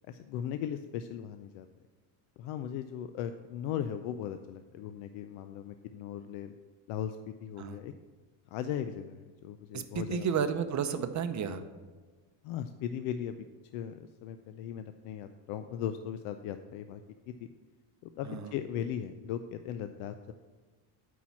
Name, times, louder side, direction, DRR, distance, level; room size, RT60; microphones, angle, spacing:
voice 1, 0.1-1.7 2.4-6.5 6.9-7.9 8.5-10.3 12.4-13.4 13.7-17.0 17.3-17.4 18.0-20.3, left 9 dB, 80° left, 9 dB, 0.6 m, -38 dB
voice 2, 9.7-11.6 18.3-18.5, right 7 dB, 35° right, 9 dB, 0.6 m, -32 dB
8.6 x 4.6 x 5.8 m, 1.4 s
cardioid pair, 115°, 50 cm